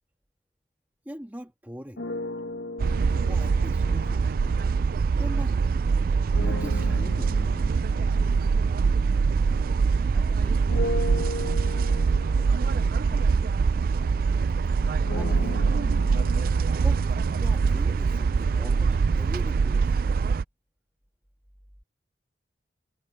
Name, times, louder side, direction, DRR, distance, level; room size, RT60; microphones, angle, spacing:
voice 1, 1.0-2.1 3.2-4.3 5.2-5.6 6.4-7.4 15.1-15.6 16.7-20.1, equal, 10° right, 1.6 m, -41 dB
sound 1, 2.0-5.5 6.3-10.1 10.7-18.6, left 2 dB, 90° left, 1.4 m, -38 dB
sound 2, 2.8-20.4, right 5 dB, 50° right, 0.3 m, -23 dB
voice 2, 10.1-12.1, equal, 10° left, 3.0 m, -49 dB
head